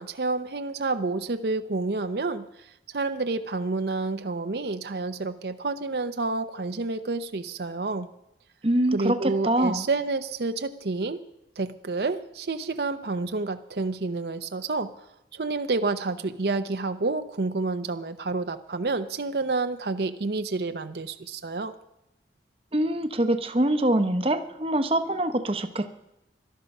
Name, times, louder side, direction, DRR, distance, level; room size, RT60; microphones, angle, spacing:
voice 1, 0.0-8.1 8.9-11.2 11.6-14.9 15.3-21.7, right 3 dB, 65° right, 8 dB, 0.7 m, -29 dB
voice 2, 8.6-9.9 22.7-25.9, right 1 dB, 30° right, 8 dB, 0.8 m, -24 dB
17.5 x 12.5 x 5.4 m, 0.88 s
head